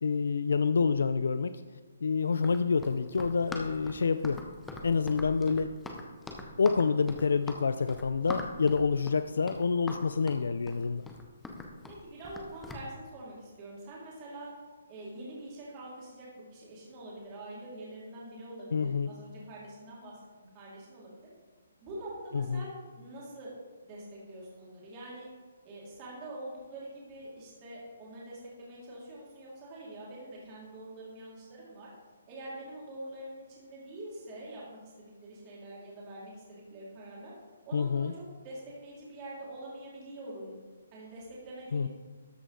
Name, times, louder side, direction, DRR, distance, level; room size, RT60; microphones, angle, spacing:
voice 1, 0.0-1.6 2.0-4.4 4.8-5.7 6.6-11.1 18.7-19.1 22.3-22.7 37.7-38.1 41.7-41.9, left 5 dB, 75° left, 11 dB, 0.3 m, -28 dB
Run, 2.3-12.9, left 2 dB, 5° left, 0.5 m, -43 dB
voice 2, 11.9-14.5 14.9-20.2 20.5-21.3 21.8-23.5 23.9-25.3 25.6-31.9 32.3-37.3 37.7-40.6 40.9-41.9, right 1 dB, 20° right, -5 dB, 2.2 m, -45 dB
13.0 x 5.2 x 3.8 m, 1.4 s
hypercardioid pair, 175°, 0 cm